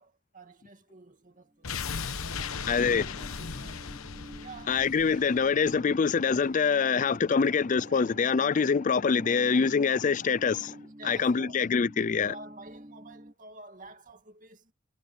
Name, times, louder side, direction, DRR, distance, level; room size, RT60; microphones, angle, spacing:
voice 1, 0.0-2.6 2.9-3.9 4.3-5.4 11.0-11.7 12.0-14.7, right 2 dB, 40° right, 2.5 m, -50 dB
sound 1, 1.6-6.6 6.9-7.0, left 5 dB, 90° left, 1.1 m, -38 dB
sound 2, 1.7-13.3, equal, 25° right, 4.2 m, -49 dB
voice 2, 2.7-3.2 4.7-10.8 11.0-12.3, left 5 dB, 35° left, 0.4 m, -25 dB
sound 3, 5.1-7.2 7.5-9.6, right 4 dB, 80° right, 2.5 m, -53 dB
head